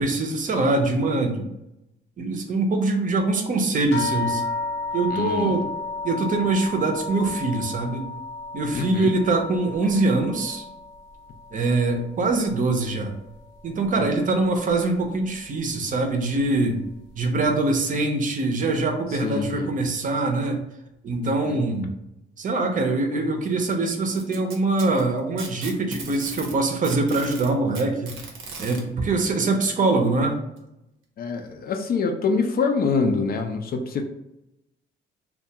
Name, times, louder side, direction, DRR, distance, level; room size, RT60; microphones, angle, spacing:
voice 1, 0.0-1.5 2.2-4.4 4.9-5.7 6.0-8.1 8.5-10.6 11.5-13.1 13.6-16.8 17.2-20.6 21.0-21.9 22.4-28.3 28.6-30.4, right 2 dB, 40° right, 4 dB, 0.6 m, -23 dB
sound 1, 3.9-12.7 13.1-13.9 14.7-14.8 15.2-15.4, left 3 dB, 75° left, 0.8 m, -33 dB
voice 2, 5.1-5.6 8.7-9.1 14.0-14.1 19.2-19.7 21.2-21.6 31.2-34.0, left 4 dB, 50° left, 4 dB, 0.4 m, -25 dB
Packing tape duct tape, 24.1-26.6 26.8-28.8 29.9-30.0 30.6-30.7 31.5-31.6, right 4 dB, 85° right, 0.6 m, -37 dB
2.3 x 2.2 x 2.8 m, 0.89 s
cardioid pair, 90°, 20 cm